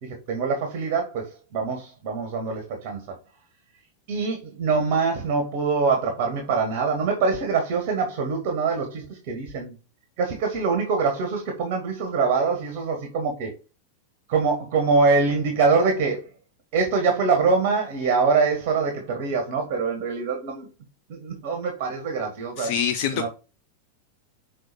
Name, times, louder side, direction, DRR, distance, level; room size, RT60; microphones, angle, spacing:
voice 1, 0.0-3.1 4.1-9.8 10.2-13.5 14.3-16.3 16.7-20.7 21.1-22.7 23.1-23.3, right 4 dB, 45° right, 1.9 m, -24 dB
voice 2, 22.6-23.3, left 7 dB, 45° left, 0.8 m, -25 dB
6.3 x 4.4 x 4.4 m
figure-of-eight pair, 90°, 0 cm